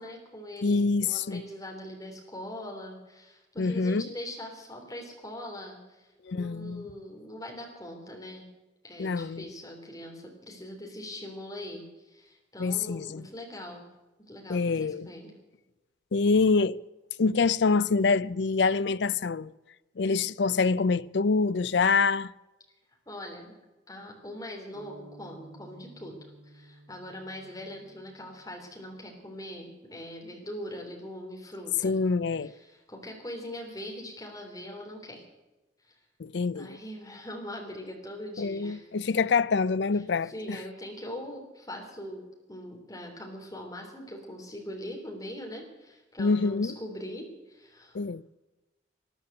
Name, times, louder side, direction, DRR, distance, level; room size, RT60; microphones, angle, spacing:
voice 1, 0.0-8.5 8.8-13.8 14.3-15.3 23.1-23.5 23.9-26.1 26.4-32.0 32.4-35.2 35.9-36.0 36.5-38.8 40.2-48.0, left 1 dB, 20° left, 3.4 m, -42 dB
voice 2, 0.6-1.4 3.6-4.1 6.3-6.9 9.0-9.4 12.6-13.3 14.5-15.1 16.1-16.8 17.2-19.5 20.0-22.3 31.8-32.5 36.2-36.8 38.4-40.6 46.2-46.7 47.9-48.2, left 4 dB, 65° left, 0.5 m, -26 dB
sound 1, 24.7-28.7, right 2 dB, 65° right, 2.2 m, -53 dB
13.5 x 11.0 x 8.1 m
head